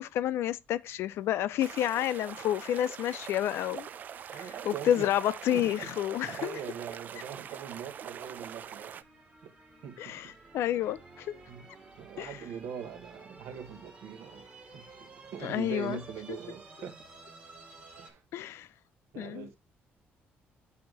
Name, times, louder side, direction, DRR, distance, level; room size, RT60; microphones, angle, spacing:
voice 1, 0.0-3.9 4.3-6.6 10.0-11.4 12.2-12.3 15.4-16.0 18.3-18.7 19.2-19.6, left 11 dB, 75° left, 0.5 m, -30 dB
sound 1, 1.6-9.0, right 8 dB, 45° right, 0.4 m, -43 dB
voice 2, 4.3-5.1 5.5-5.9 6.2-9.0 9.4-9.5 9.8-10.3 11.5-11.7 12.0-17.0 18.0-18.2 19.1-19.6, right 8 dB, 75° right, 1.2 m, -42 dB
sound 2, 6.8-18.1, right 3 dB, 25° right, 1.7 m, -53 dB
8.7 x 2.9 x 4.7 m
cardioid pair, 160°, 4 cm